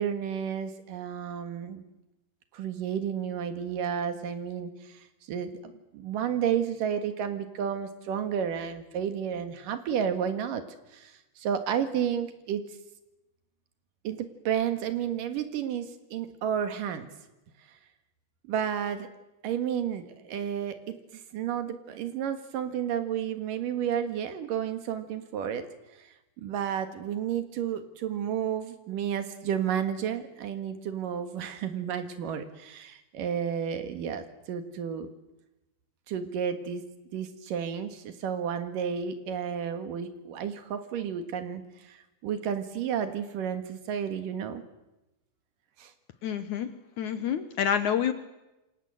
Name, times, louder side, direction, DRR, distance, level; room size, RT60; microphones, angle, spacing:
voice 1, 0.0-1.8 2.5-10.6 10.9-12.6 14.0-17.1 18.5-19.1 19.4-25.7 26.0-26.1 26.4-35.1 36.1-36.8 37.1-42.0 42.2-44.6 45.8-45.9, right 8 dB, 60° right, 8 dB, 3.1 m, -31 dB
voice 2, 46.2-46.7 47.0-48.1, left 8 dB, 70° left, 10 dB, 1.9 m, -27 dB
27.5 x 25.5 x 7.9 m, 1.0 s
omnidirectional pair, 4.7 m